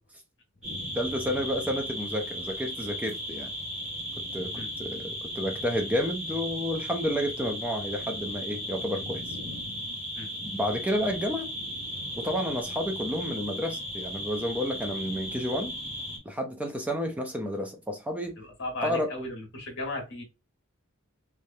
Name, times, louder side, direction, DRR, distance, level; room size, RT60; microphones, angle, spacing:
sound 1, 0.6-16.2, equal, 35° right, 2.1 m, -36 dB
voice 1, 0.9-3.5 4.2-9.4 10.4-11.5 12.2-15.7 16.3-18.3 18.8-19.1, equal, 5° right, 0.5 m, -31 dB
voice 2, 18.4-20.2, left 2 dB, 60° left, 1.4 m, -36 dB
3.3 x 3.2 x 2.6 m
head